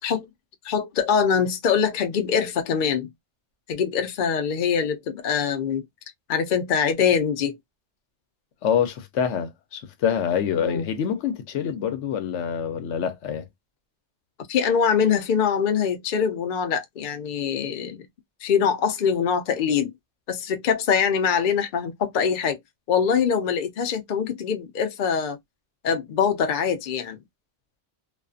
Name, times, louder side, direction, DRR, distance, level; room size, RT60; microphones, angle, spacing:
voice 1, 0.6-3.1 3.7-5.8 6.3-7.6 10.6-10.9 14.5-18.1 18.4-19.9 20.3-22.6 22.9-25.4 25.8-27.2, left 7 dB, 55° left, 0.6 m, -23 dB
voice 2, 8.6-13.5, left 8 dB, 75° left, 0.9 m, -26 dB
2.5 x 2.4 x 2.3 m
omnidirectional pair, 1.2 m